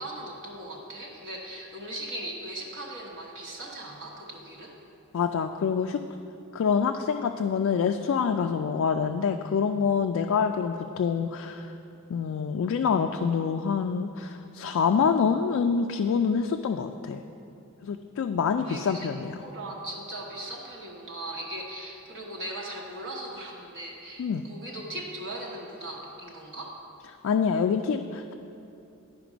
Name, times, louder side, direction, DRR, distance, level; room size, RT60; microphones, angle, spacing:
voice 1, 0.0-4.7 18.5-26.7, right 1 dB, 60° right, -3 dB, 1.1 m, -39 dB
voice 2, 5.1-6.0 6.5-11.7 12.1-17.2 17.8-19.4 24.2-24.4 27.2-28.3, left 6 dB, 65° left, 5 dB, 0.3 m, -26 dB
10.5 x 5.2 x 5.0 m, 2.7 s
head